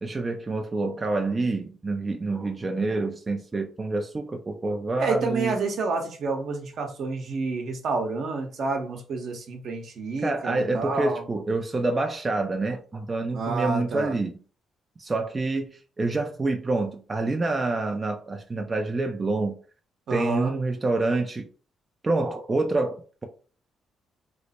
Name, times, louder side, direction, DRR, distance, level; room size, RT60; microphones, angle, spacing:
voice 1, 0.0-5.6 10.2-14.4 15.0-19.6 20.1-21.5 22.0-23.2, right 2 dB, 25° right, 0.4 m, -27 dB
voice 2, 5.0-11.2 13.3-14.1 20.1-20.5, right 3 dB, 65° right, 0.9 m, -29 dB
3.1 x 2.0 x 4.1 m
cardioid pair, 90°, 0 cm